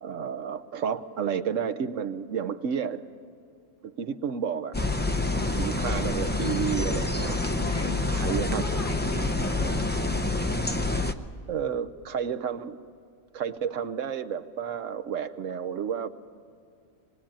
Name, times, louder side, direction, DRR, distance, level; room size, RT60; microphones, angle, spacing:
voice 1, 0.0-3.1 3.8-4.8 5.6-7.5 8.1-8.6 11.5-12.8 13.3-16.1, right 7 dB, 70° right, 11 dB, 1.1 m, -31 dB
sound 1, 4.7-11.1, left 2 dB, 10° left, 0.4 m, -27 dB
voice 2, 5.3-5.6 7.5-10.3, left 3 dB, 55° left, 6 dB, 1.4 m, -41 dB
26.0 x 20.5 x 8.8 m, 2.3 s
omnidirectional pair, 1.4 m